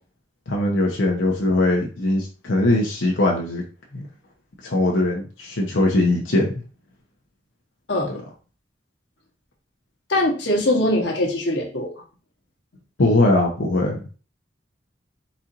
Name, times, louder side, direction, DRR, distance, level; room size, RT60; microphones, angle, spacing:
voice 1, 0.5-3.6 3.9-4.1 4.6-6.5 8.1-8.2 13.0-14.0, left 2 dB, 80° left, -1 dB, 0.9 m, -20 dB
voice 2, 7.9-8.2 10.1-11.9, left 1 dB, 65° left, 0 dB, 1.1 m, -22 dB
4.3 x 4.3 x 2.5 m, 0.36 s
head